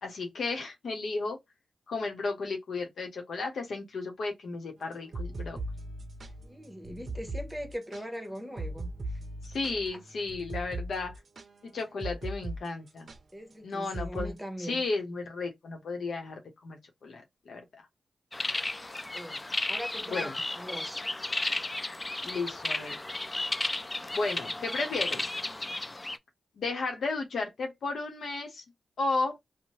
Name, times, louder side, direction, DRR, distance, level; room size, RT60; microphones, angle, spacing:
voice 1, 0.0-1.4 1.9-5.6 9.4-11.1 11.6-13.1 13.6-17.8 20.1-20.4 22.2-23.0 24.1-25.3 26.6-28.6 29.0-29.4, left 3 dB, 75° left, 0.8 m, -34 dB
sound 1, 4.9-12.6 12.9-13.2 13.9-14.3, right 2 dB, 60° right, 0.5 m, -39 dB
voice 2, 6.4-9.2 13.3-14.8 19.1-21.1, equal, 10° right, 1.0 m, -41 dB
sound 2, 18.3-26.2, left 2 dB, 25° left, 0.3 m, -33 dB
2.7 x 2.1 x 3.0 m
cardioid pair, 45°, 0 cm